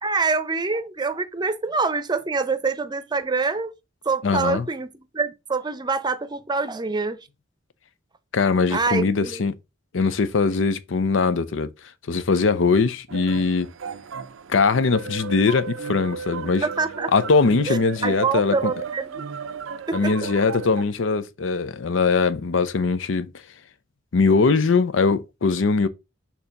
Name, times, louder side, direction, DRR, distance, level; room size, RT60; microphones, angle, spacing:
voice 1, 0.0-3.7 4.1-7.2 8.7-9.4 16.6-17.1 17.7-19.2 19.9-20.1, right 4 dB, 20° right, 0.6 m, -25 dB
voice 2, 4.2-4.6 8.3-9.5 9.9-11.7 12.1-13.7 14.5-16.6 17.1-18.7 19.9-23.3 24.1-25.9, left 4 dB, 75° left, 0.6 m, -21 dB
sound 1, 13.1-20.8, right 6 dB, 90° right, 0.5 m, -35 dB
6.6 x 2.9 x 5.2 m
head